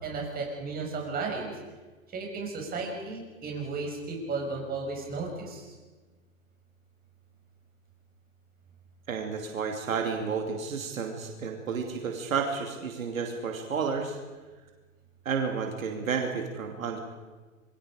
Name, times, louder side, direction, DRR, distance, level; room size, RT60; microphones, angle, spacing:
voice 1, 0.0-1.5 2.1-5.7, right 3 dB, 20° right, 0 dB, 6.2 m, -34 dB
voice 2, 9.1-14.2 15.2-17.0, right 5 dB, 75° right, 3 dB, 2.7 m, -31 dB
27.0 x 23.0 x 5.1 m, 1.3 s
hypercardioid pair, 115°, 41 cm